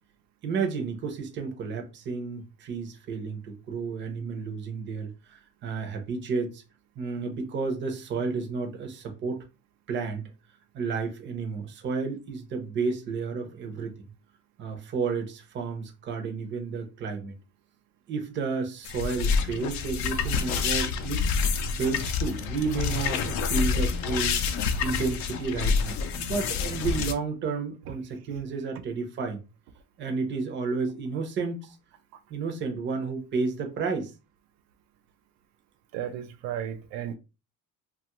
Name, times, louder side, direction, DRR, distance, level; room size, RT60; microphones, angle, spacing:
voice 1, 0.4-6.6 7.0-9.4 9.9-10.2 10.7-13.9 14.6-17.4 18.1-21.2 21.8-24.4 24.8-29.4 30.0-31.7 32.3-34.1, right 4 dB, 30° right, 0.6 m, -31 dB
sound 1, 18.8-27.1, left 5 dB, 55° left, 0.5 m, -27 dB
voice 2, 35.9-37.1, right 10 dB, 80° right, 0.5 m, -34 dB
2.9 x 2.4 x 2.9 m
cardioid pair, 170°, 35 cm